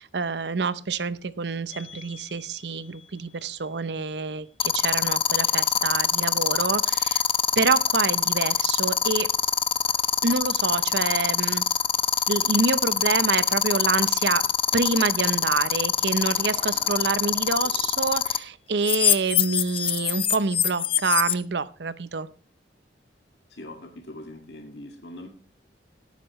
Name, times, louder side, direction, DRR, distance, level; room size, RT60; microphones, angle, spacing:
voice 1, 0.0-7.2 7.6-9.3 10.2-11.6 12.3-14.5 14.7-22.3, right 4 dB, 75° right, 16 dB, 0.7 m, -27 dB
sound 1, 1.7-2.0 4.6-18.4 18.8-21.3, left 9 dB, 30° left, 0.6 m, -23 dB
Laughter / Crowd, 15.7-19.5, right 1 dB, 30° right, 3.6 m, -48 dB
voice 2, 23.5-25.3, left 1 dB, 70° left, 3 dB, 2.0 m, -41 dB
17.5 x 9.4 x 3.1 m, 0.40 s
head